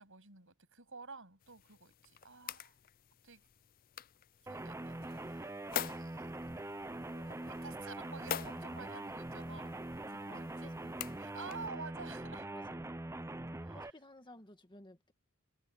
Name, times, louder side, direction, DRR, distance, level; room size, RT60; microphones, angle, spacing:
voice 1, 0.0-2.8 3.2-3.5 4.4-6.3 7.3-9.8 10.1-10.8 11.2-12.5 13.5-13.8, right 4 dB, 65° right, 7.8 m, -51 dB
sound 1, 1.4-11.7, left 10 dB, 40° left, 0.5 m, -47 dB
sound 2, 4.5-13.9, right 1 dB, 15° right, 0.7 m, -43 dB
voice 2, 7.0-7.5 8.5-9.8 10.3-10.9 12.5-12.9 13.7-15.1, left 1 dB, 20° left, 1.9 m, -57 dB
head